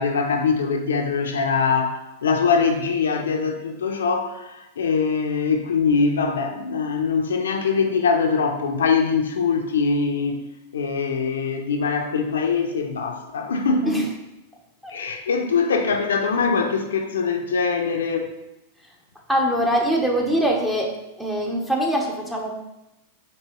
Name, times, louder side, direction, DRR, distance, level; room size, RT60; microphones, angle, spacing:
voice 1, 0.0-10.4 10.7-14.0 14.9-18.3, left 5 dB, 80° left, 4 dB, 0.5 m, -22 dB
voice 2, 19.3-20.9 21.2-22.5, equal, 5° right, 0 dB, 0.8 m, -22 dB
4.5 x 2.9 x 3.0 m, 0.93 s
hypercardioid pair, 105°, 0 cm